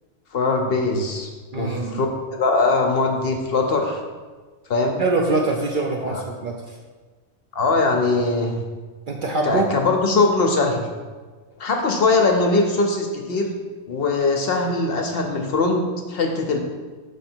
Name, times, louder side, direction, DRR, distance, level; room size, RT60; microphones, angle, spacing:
voice 1, 0.3-1.3 1.5-4.0 4.7-5.0 6.0-6.2 7.5-8.6 9.4-10.9 11.6-13.5 13.9-15.8 16.1-16.6, left 3 dB, 60° left, 3 dB, 0.7 m, -21 dB
voice 2, 1.5-2.0 5.0-6.8 9.1-9.7, right 3 dB, 60° right, 0 dB, 0.5 m, -24 dB
6.4 x 3.3 x 4.4 m, 1.4 s
omnidirectional pair, 1.3 m